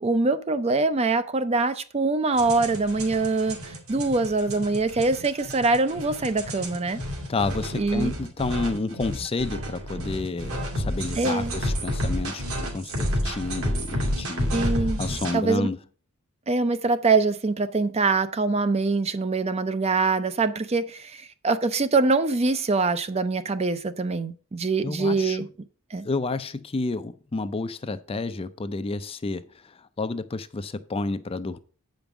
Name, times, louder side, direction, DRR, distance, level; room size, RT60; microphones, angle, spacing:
voice 1, 0.0-7.0 7.7-8.1 11.2-11.5 14.5-15.0 15.3-15.7 16.5-25.5 25.9-26.0, right 3 dB, 30° right, 0.5 m, -24 dB
sound 1, 2.4-15.3, equal, 70° right, 2.4 m, -30 dB
voice 2, 7.3-14.5 15.0-15.8 24.8-25.4 26.0-31.6, left 3 dB, 25° left, 0.4 m, -30 dB
8.1 x 5.2 x 6.0 m
head